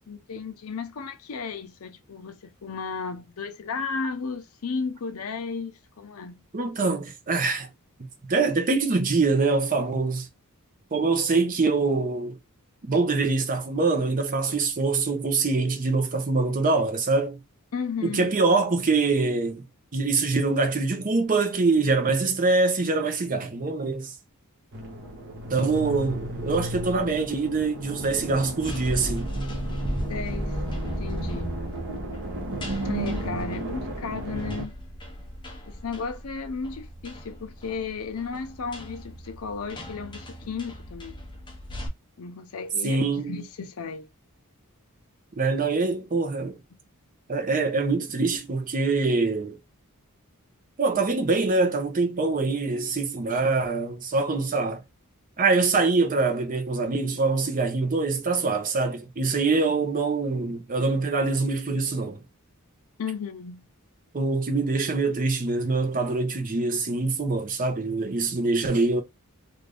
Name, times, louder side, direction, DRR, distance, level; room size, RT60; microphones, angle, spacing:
voice 1, 0.1-6.4 17.7-18.3 30.0-31.6 32.8-34.7 35.7-41.2 42.2-44.1 63.0-63.7, left 5 dB, 70° left, 0.5 m, -34 dB
voice 2, 6.5-7.7 8.3-10.3 10.9-12.4 12.8-17.4 18.0-19.6 19.9-24.1 25.5-29.3 42.8-43.3 45.4-46.6 47.3-49.6 50.8-54.8 55.4-62.2 64.1-69.0, right 3 dB, 40° right, 0.6 m, -24 dB
sound 1, 24.7-34.6, right 1 dB, 55° right, 1.0 m, -34 dB
sound 2, 28.6-41.9, equal, 20° left, 0.7 m, -36 dB
2.6 x 2.5 x 3.3 m
head